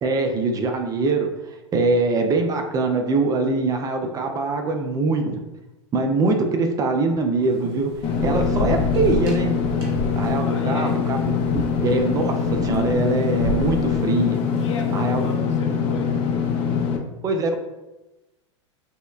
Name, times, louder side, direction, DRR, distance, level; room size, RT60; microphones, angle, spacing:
voice 1, 0.0-5.4 5.9-7.9 8.2-9.5 10.2-11.3 11.8-12.3 12.6-14.4 14.9-15.3 17.2-17.6, right 3 dB, 20° right, 4 dB, 0.4 m, -23 dB
Thunder / Rain, 7.4-15.1, left 2 dB, 40° right, 0.9 m, -31 dB
Engine / Mechanisms, 8.0-17.0, left 6 dB, 35° left, 0.5 m, -23 dB
voice 2, 10.4-11.0 14.6-16.2, left 3 dB, 70° left, 1 dB, 0.8 m, -36 dB
5.4 x 2.1 x 2.3 m, 1.0 s
hypercardioid pair, 100°, 16 cm